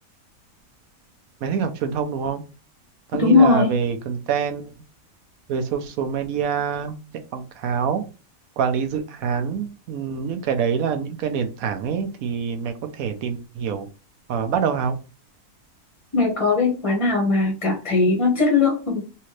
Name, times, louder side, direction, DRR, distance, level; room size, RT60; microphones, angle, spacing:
voice 1, 1.4-2.4 3.1-4.8 5.5-7.0 7.3-8.0 8.6-13.9 14.3-14.9, right 7 dB, 75° right, 7 dB, 1.1 m, -25 dB
voice 2, 3.2-3.7 16.1-19.0, left 4 dB, 25° left, 1 dB, 0.8 m, -19 dB
3.3 x 2.8 x 3.1 m, 0.32 s
omnidirectional pair, 1.6 m